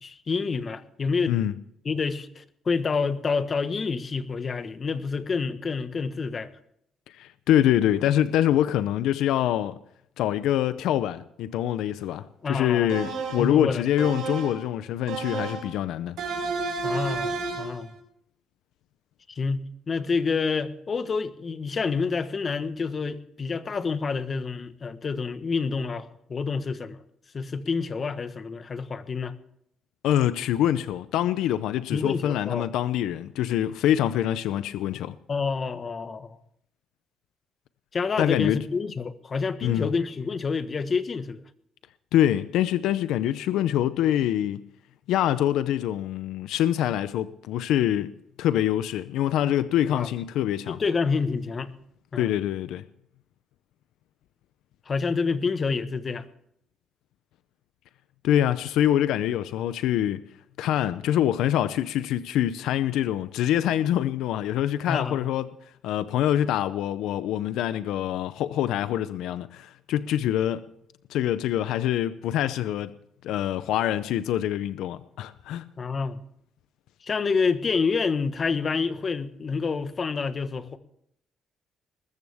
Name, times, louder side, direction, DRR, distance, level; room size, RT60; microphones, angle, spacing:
voice 1, 0.0-1.4 1.8-6.5 12.4-13.0 13.4-13.9 16.8-17.9 19.3-27.0 27.3-29.3 31.9-32.7 35.3-36.4 37.9-41.4 49.9-50.1 50.7-51.7 52.1-52.3 54.9-56.2 64.9-65.2 75.8-76.2 77.0-80.8, left 5 dB, 40° left, 1.3 m, -28 dB
voice 2, 7.1-9.8 10.2-16.1 30.0-35.2 38.2-38.6 39.6-39.9 42.1-44.6 45.1-48.1 48.4-50.8 52.2-52.8 58.2-60.2 60.6-65.5 65.8-70.7 71.1-72.9 73.2-75.6, left 11 dB, 90° left, 0.6 m, -25 dB
sound 1, 12.9-13.6 14.0-14.6 15.1-15.7 16.2-17.8, right 4 dB, 85° right, 5.8 m, -31 dB
20.5 x 14.0 x 3.5 m
cardioid pair, 90°, 0 cm